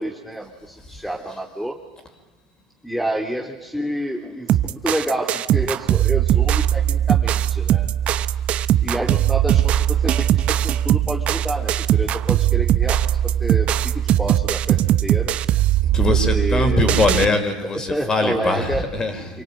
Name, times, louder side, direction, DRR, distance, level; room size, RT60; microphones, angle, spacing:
voice 1, 0.0-1.8 2.8-7.9 8.8-13.9 14.2-15.4 16.1-17.0 17.3-17.4 17.7-18.9 19.3-19.4, right 1 dB, ahead, 1 dB, 3.4 m, -28 dB
sound 1, 4.5-17.3, right 11 dB, 45° right, 1.1 m, -19 dB
voice 2, 15.9-19.4, left 2 dB, 25° left, 7 dB, 5.5 m, -22 dB
27.5 x 24.0 x 9.0 m, 1.1 s
hypercardioid pair, 85°, 3 cm